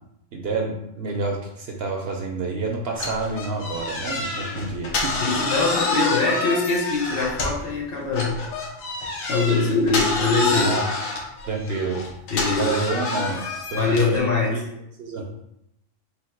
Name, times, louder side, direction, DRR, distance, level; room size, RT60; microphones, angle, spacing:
voice 1, 0.3-5.3 10.5-10.9 11.5-12.0 12.5-13.4 13.7-14.2 14.5-14.6 15.0-15.2, right 3 dB, 60° right, 0 dB, 0.8 m, -28 dB
sound 1, 3.0-7.7 8.1-14.2, left 3 dB, 90° left, 1.2 m, -28 dB
voice 2, 5.2-8.4 9.2-10.7 12.3-12.7 13.8-14.5, left 3 dB, 55° left, -1 dB, 0.8 m, -22 dB
3.4 x 2.7 x 4.4 m, 0.82 s
omnidirectional pair, 1.3 m